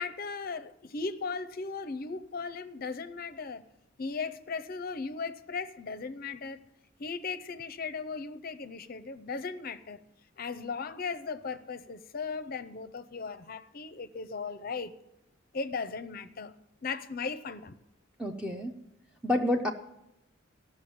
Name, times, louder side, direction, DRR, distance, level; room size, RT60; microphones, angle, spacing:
voice 1, 0.0-3.6 4.0-6.6 7.0-10.0 10.4-15.0 15.5-16.5 16.8-17.7, left 4 dB, 45° left, 0.6 m, -37 dB
voice 2, 18.2-18.8 19.2-19.7, left 1 dB, 5° right, 0.6 m, -28 dB
14.0 x 6.3 x 8.6 m
head